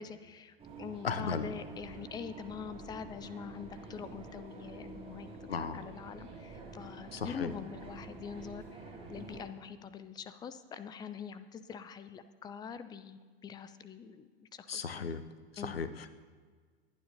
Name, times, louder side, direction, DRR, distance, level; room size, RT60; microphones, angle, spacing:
voice 1, 0.0-8.8 9.1-15.1 15.6-15.7, left 7 dB, 15° left, 13 dB, 0.5 m, -44 dB
sound 1, 0.6-9.4, right 3 dB, 20° right, 2.5 m, -48 dB
voice 2, 1.0-1.5 5.5-5.8 7.1-7.5 14.7-15.2 15.6-16.1, left 5 dB, 80° left, 13 dB, 0.8 m, -35 dB
22.5 x 9.4 x 2.8 m, 1.5 s
figure-of-eight pair, 85°, 30 cm